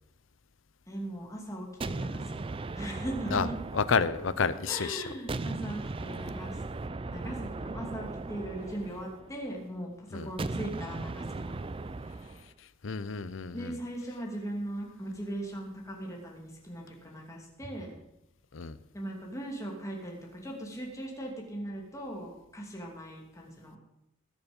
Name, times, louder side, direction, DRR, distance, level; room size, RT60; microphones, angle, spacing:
voice 1, 0.9-2.4 2.7-3.5 4.7-6.6 7.1-11.6 13.5-18.0 18.9-23.8, right 1 dB, 15° left, -1 dB, 2.7 m, -39 dB
sound 1, 1.8-4.8 5.3-9.5 10.4-12.5, right 3 dB, 25° right, 0.4 m, -37 dB
voice 2, 3.7-5.0 10.1-10.3 12.8-13.7 18.5-18.8, left 5 dB, 80° left, 14 dB, 0.7 m, -29 dB
20.0 x 7.2 x 5.4 m, 0.87 s
head